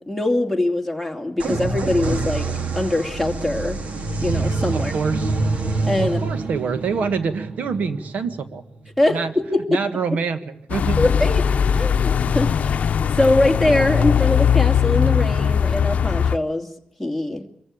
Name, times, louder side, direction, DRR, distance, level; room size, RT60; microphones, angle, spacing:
voice 1, 0.0-2.5 2.7-3.8 4.2-4.9 5.9-6.2 9.0-9.8 11.0-11.4 11.7-16.7 17.0-17.4, left 1 dB, 5° right, 5 dB, 2.7 m, -22 dB
sound 1, 1.4-9.0, right 3 dB, 60° right, 2.8 m, -26 dB
voice 2, 4.7-5.3 6.0-8.6 9.1-9.3 9.7-11.0 12.2-12.3, right 5 dB, 80° right, 10 dB, 1.7 m, -26 dB
sound 2, 10.7-16.4, left 7 dB, 65° left, 0.7 m, -19 dB
24.5 x 15.0 x 8.7 m, 0.77 s
cardioid pair, 100°, 3 cm